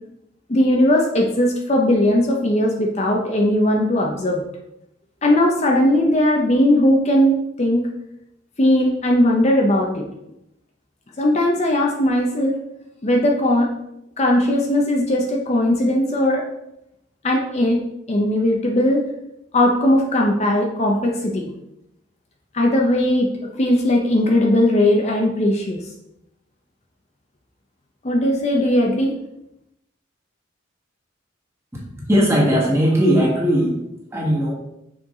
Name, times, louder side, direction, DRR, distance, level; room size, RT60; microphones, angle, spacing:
voice 1, 0.5-4.4 5.2-7.9 8.6-10.0 11.2-12.6 13.0-13.7 14.2-16.4 17.2-17.8 18.1-19.0 19.5-21.5 22.5-23.3 23.5-25.8 28.0-29.2, left 1 dB, 35° left, 0 dB, 0.7 m, -18 dB
voice 2, 32.1-33.8 34.1-34.5, equal, 15° right, -3 dB, 1.6 m, -18 dB
6.1 x 4.5 x 3.8 m, 0.83 s
head